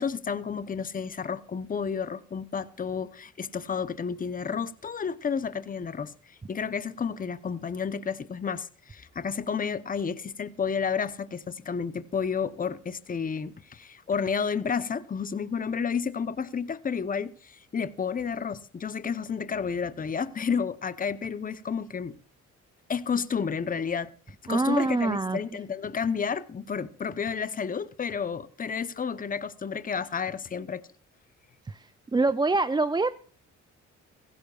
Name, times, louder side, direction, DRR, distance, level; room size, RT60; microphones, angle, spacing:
voice 1, 0.0-6.1 6.5-22.2 22.9-24.1 24.4-30.8, left 6 dB, 30° left, 0.8 m, -31 dB
voice 2, 24.5-25.4 31.7-31.8 32.1-33.2, right 3 dB, 15° right, 0.4 m, -25 dB
16.5 x 16.0 x 2.4 m
cardioid pair, 90°, 30 cm